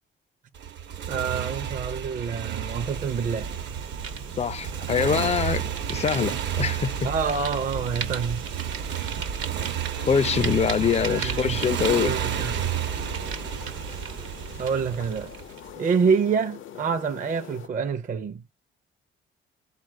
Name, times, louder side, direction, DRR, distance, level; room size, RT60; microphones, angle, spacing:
Motorcycle, 0.5-15.7, right 9 dB, 65° right, 0.9 m, -32 dB
voice 1, 1.1-3.5 7.0-8.4 11.1-11.6 12.0-12.8 14.6-15.3 15.8-18.4, right 6 dB, 40° right, 0.6 m, -27 dB
Fire, 2.3-15.7, right 6 dB, 90° right, 1.0 m, -37 dB
voice 2, 4.4-5.6 5.9-7.1 10.1-12.1, left 7 dB, 35° left, 0.4 m, -24 dB
sound 1, 9.9-17.7, left 10 dB, 85° left, 0.7 m, -43 dB
4.5 x 2.4 x 4.3 m
cardioid pair, 90°, 20 cm